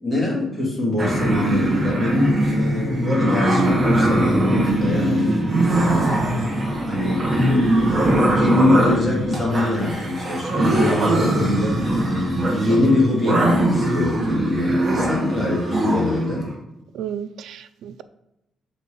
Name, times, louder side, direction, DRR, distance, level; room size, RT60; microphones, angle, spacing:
voice 1, 0.0-6.5 6.9-7.2 7.6-12.1 12.4-16.5, left 2 dB, 10° left, -5 dB, 2.6 m, -24 dB
sound 1, 1.0-16.3, right 1 dB, 25° right, 1.5 m, -21 dB
voice 2, 16.9-18.0, right 9 dB, 80° right, 12 dB, 0.4 m, -33 dB
6.4 x 4.2 x 5.3 m, 0.87 s
cardioid pair, 125°, 0 cm